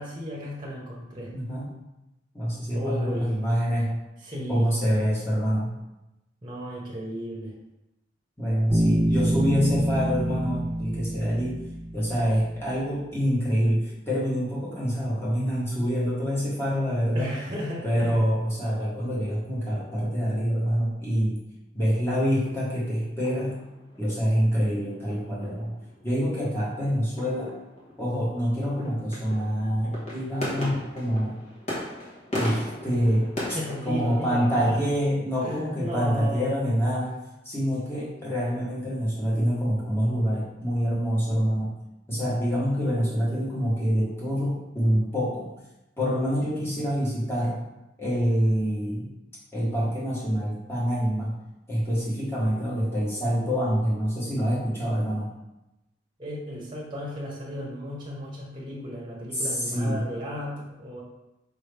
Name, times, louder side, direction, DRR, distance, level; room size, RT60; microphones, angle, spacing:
voice 1, 0.0-1.3 2.7-3.3 4.2-4.6 6.4-7.6 9.3-9.5 17.1-18.3 33.4-34.8 35.4-36.6 37.0-37.1 37.9-38.0 56.2-61.0, equal, 25° right, -4 dB, 1.0 m, -35 dB
voice 2, 1.3-1.7 2.3-4.0 4.5-5.7 8.4-11.5 11.9-17.3 17.8-21.4 21.7-23.5 24.0-25.7 26.0-27.5 28.0-31.4 32.3-33.6 33.8-37.1 37.4-41.8 42.1-45.5 46.0-47.6 48.0-49.1 49.5-51.3 51.7-55.3 59.3-60.0, equal, 15° left, -7 dB, 1.4 m, -26 dB
Bass guitar, 8.7-12.4, equal, 10° right, 1.3 m, -26 dB
sound 1, 21.8-34.7, left 1 dB, 35° left, 1.3 m, -38 dB
5.1 x 3.0 x 3.4 m, 0.94 s
head